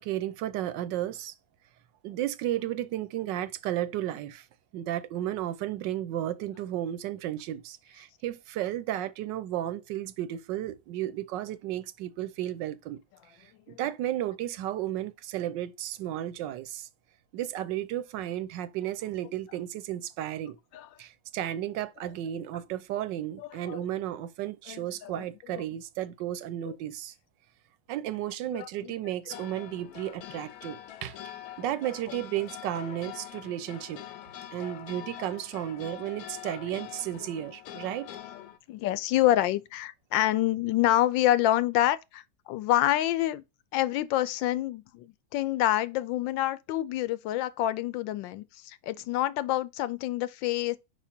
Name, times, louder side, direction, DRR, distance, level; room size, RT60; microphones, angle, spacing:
voice 1, 0.0-1.3 2.0-4.5 4.7-13.0 13.7-16.9 17.3-20.6 21.0-27.1 27.9-34.0 34.5-38.1, right 12 dB, 80° right, 1.3 m, -33 dB
voice 2, 23.4-23.8 24.7-25.3 25.5-25.6 28.5-28.9 29.3-29.4 38.3-43.4 43.7-50.8, left 14 dB, 90° left, 1.3 m, -27 dB
sound 1, 29.3-38.6, left 11 dB, 70° left, 1.0 m, -44 dB
5.1 x 4.9 x 4.3 m
omnidirectional pair, 2.0 m